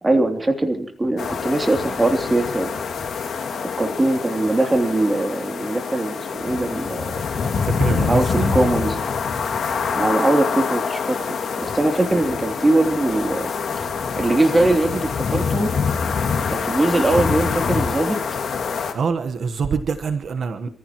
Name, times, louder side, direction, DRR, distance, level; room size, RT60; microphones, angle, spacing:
voice 1, 0.0-2.7 3.6-7.1 7.9-8.2 8.5-9.0 9.9-13.5 14.2-15.7 16.5-18.2, right 2 dB, 20° right, 4 dB, 3.0 m, -21 dB
sound 1, 1.2-18.9, left 5 dB, 80° left, 2.4 m, -25 dB
voice 2, 7.5-8.5 18.9-20.7, right 5 dB, 70° right, 9 dB, 1.2 m, -24 dB
28.5 x 15.0 x 3.1 m, 0.40 s
cardioid pair, 95°, 0 cm